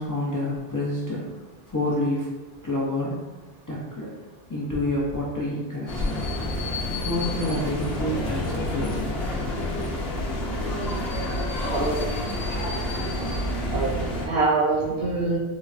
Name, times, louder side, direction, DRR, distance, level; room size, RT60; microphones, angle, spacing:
voice 1, 0.0-1.3 1.7-2.3 2.6-3.2 3.7-4.1 4.5-6.3 6.9-9.1, left 1 dB, 30° left, -7 dB, 0.4 m, -28 dB
sound 1, 5.9-14.3, left 1 dB, 70° left, 0.8 m, -28 dB
voice 2, 11.6-12.2 13.7-15.4, right 3 dB, 65° right, -7 dB, 0.8 m, -25 dB
3.8 x 2.1 x 2.4 m, 1.3 s
omnidirectional pair, 1.1 m